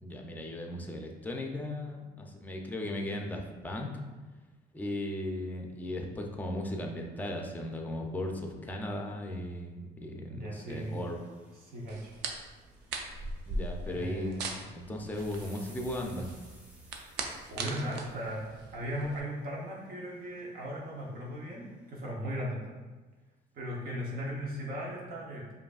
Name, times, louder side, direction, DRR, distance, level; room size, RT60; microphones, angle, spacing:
voice 1, 0.0-3.9 4.7-11.2 13.4-14.4 14.7-16.3, left 1 dB, 10° left, 2 dB, 0.5 m, -37 dB
voice 2, 10.3-11.0 11.6-12.1 13.8-14.5 17.5-18.4 18.7-22.8 23.5-25.4, equal, 60° right, -3 dB, 0.8 m, -37 dB
sound 1, 10.7-22.1, equal, 10° right, 0.9 m, -60 dB
sound 2, 11.9-19.2, right 3 dB, 90° right, 0.5 m, -40 dB
5.0 x 2.6 x 2.4 m, 1.3 s
cardioid pair, 110°, 17 cm